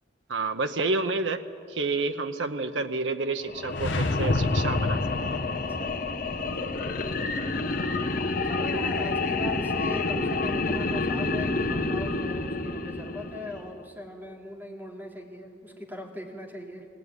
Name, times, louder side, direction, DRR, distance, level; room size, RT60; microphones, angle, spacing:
voice 1, 0.3-5.3, right 3 dB, 90° right, 7 dB, 0.9 m, -29 dB
sound 1, 3.4-13.8, left 3 dB, 50° left, 1.1 m, -29 dB
sound 2, 3.7-5.9, left 2 dB, 85° left, 0.9 m, -28 dB
voice 2, 5.7-7.1 8.4-16.9, left 1 dB, 10° right, -1 dB, 2.9 m, -40 dB
20.0 x 17.5 x 9.6 m, 2.4 s
head